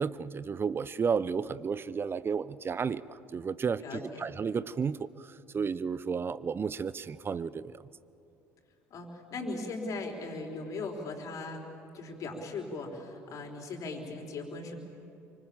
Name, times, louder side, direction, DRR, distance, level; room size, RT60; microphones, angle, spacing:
voice 1, 0.0-5.3 5.5-7.8, right 6 dB, 30° right, 18 dB, 0.8 m, -32 dB
voice 2, 3.8-4.3 8.9-11.6 11.9-14.7, left 3 dB, 50° left, 2 dB, 4.6 m, -38 dB
28.0 x 25.0 x 7.4 m, 2.7 s
hypercardioid pair, 65°, 7 cm